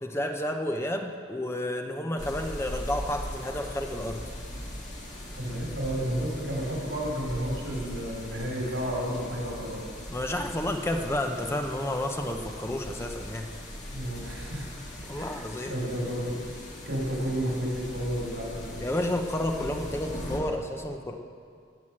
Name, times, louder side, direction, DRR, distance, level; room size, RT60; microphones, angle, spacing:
voice 1, 0.0-4.2 10.1-13.5 15.0-15.7 18.8-21.1, left 1 dB, 15° left, 4 dB, 0.7 m, -31 dB
sound 1, 2.2-20.4, left 1 dB, 40° left, 2.2 m, -40 dB
voice 2, 5.3-9.8 13.9-14.7 15.1-18.8, equal, 80° right, -3 dB, 4.5 m, -32 dB
19.0 x 6.3 x 7.5 m, 2.2 s
head